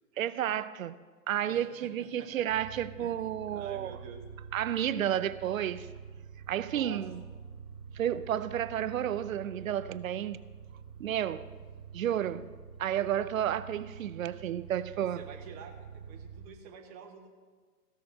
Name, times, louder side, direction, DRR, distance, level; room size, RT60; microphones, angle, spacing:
voice 1, 0.2-1.0 1.3-4.0 4.5-5.9 6.5-7.2 7.9-10.4 11.0-11.5 11.9-12.5 12.8-15.2, right 10 dB, 55° right, 0.6 m, -31 dB
voice 2, 1.5-2.4 3.0-3.1 3.5-4.2 6.6-7.0 15.0-17.3, right 7 dB, 25° right, 1.3 m, -49 dB
sound 1, 2.5-16.5, right 7 dB, 10° right, 0.4 m, -47 dB
15.0 x 6.6 x 6.5 m
hypercardioid pair, 125°, 48 cm